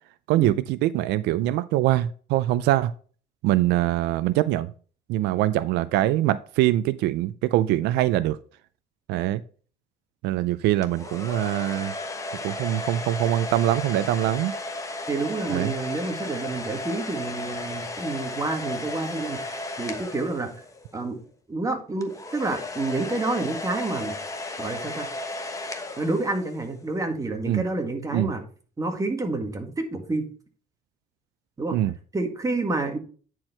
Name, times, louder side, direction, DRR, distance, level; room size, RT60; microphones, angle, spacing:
voice 1, 0.3-2.9 3.4-4.7 5.1-8.4 9.1-9.4 10.2-11.9 12.4-14.5 15.5-15.7 27.5-27.6 28.1-28.3 31.7-31.9, right 14 dB, 85° right, 0.4 m, -23 dB
sound 1, 10.8-20.9 22.0-26.7, left 2 dB, 20° left, 1.2 m, -34 dB
voice 2, 15.1-20.7 20.9-21.2 21.5-24.2 24.6-25.1 26.0-28.5 28.8-30.2 31.6-31.8 32.1-33.0, right 2 dB, 20° right, 1.8 m, -29 dB
9.7 x 4.6 x 4.4 m
cardioid pair, 110°, 17 cm